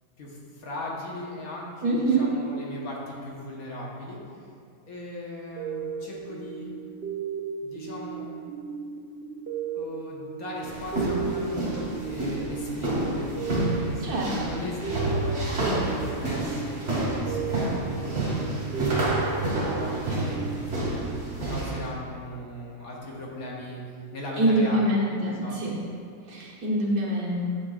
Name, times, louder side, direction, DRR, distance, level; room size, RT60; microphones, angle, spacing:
voice 1, 0.2-4.5 4.9-6.7 7.6-8.3 9.7-13.3 13.6-21.1 21.5-23.8 24.1-24.8 25.2-25.6, left 1 dB, 60° left, -3 dB, 1.5 m, -38 dB
voice 2, 1.8-2.3 14.0-14.5 24.4-25.8 26.3-27.4, right 1 dB, 70° right, -4 dB, 1.7 m, -25 dB
sound 1, 5.6-21.9, right 7 dB, 85° right, 0.5 m, -36 dB
sound 2, 10.6-21.9, right 1 dB, 45° right, 2.0 m, -29 dB
9.7 x 7.0 x 2.4 m, 2.3 s
omnidirectional pair, 1.7 m